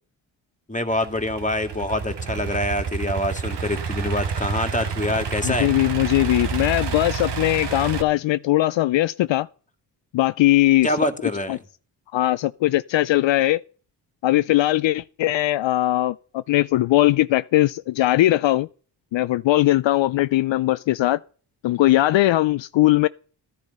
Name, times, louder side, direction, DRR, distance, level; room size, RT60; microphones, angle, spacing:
voice 1, 0.7-5.7 10.8-11.6, left 1 dB, 15° left, 2.2 m, -25 dB
Idling / Accelerating revving vroom, 0.9-8.0, right 6 dB, 60° right, 1.7 m, -29 dB
voice 2, 5.4-9.5 10.1-10.9 11.5-11.6 12.1-13.6 14.2-18.7 19.1-21.2 21.6-23.1, left 15 dB, 70° left, 0.6 m, -20 dB
14.0 x 10.5 x 5.5 m
cardioid pair, 55°, 48 cm